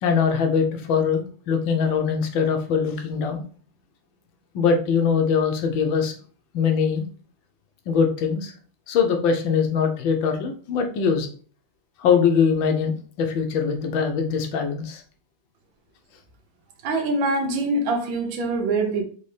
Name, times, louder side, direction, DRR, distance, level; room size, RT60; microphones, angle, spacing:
voice 1, 0.0-3.4 4.5-6.1 6.5-7.0 7.9-8.5 8.9-11.3 12.0-15.0, left 6 dB, 80° left, 1.5 m, -22 dB
voice 2, 16.8-19.0, right 2 dB, 90° right, 1.6 m, -24 dB
4.1 x 3.4 x 3.3 m
omnidirectional pair, 2.1 m